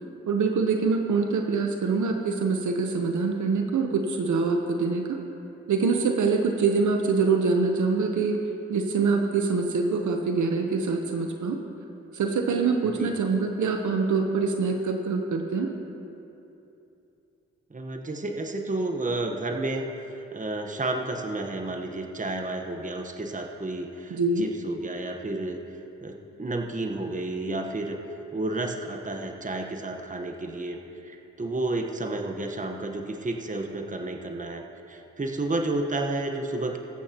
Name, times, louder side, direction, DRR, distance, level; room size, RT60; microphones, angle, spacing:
voice 1, 0.3-5.2 5.7-8.4 8.7-11.6 12.1-15.7 24.1-24.5, right 4 dB, 70° right, 4 dB, 0.9 m, -25 dB
voice 2, 17.7-19.8 20.3-25.6 26.0-28.0 28.3-36.8, right 2 dB, 25° right, 3 dB, 1.1 m, -31 dB
21.0 x 8.4 x 2.9 m, 2.9 s
supercardioid pair, 45°, 31 cm